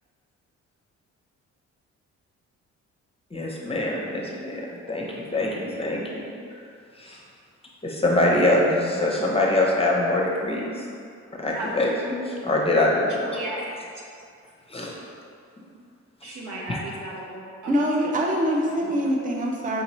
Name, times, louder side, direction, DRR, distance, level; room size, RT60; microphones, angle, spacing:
voice 1, 3.3-4.6 4.9-6.3 7.0-7.2 7.8-10.7 11.4-13.4 14.7-14.9 16.7-16.8, left 1 dB, 20° left, -2 dB, 0.7 m, -24 dB
voice 2, 13.2-13.7 16.2-17.7 18.7-18.9, right 2 dB, 80° right, -4 dB, 1.0 m, -36 dB
voice 3, 17.7-19.8, equal, 25° right, -1 dB, 0.5 m, -24 dB
5.1 x 2.8 x 3.0 m, 2.4 s
cardioid pair, 90°, 30 cm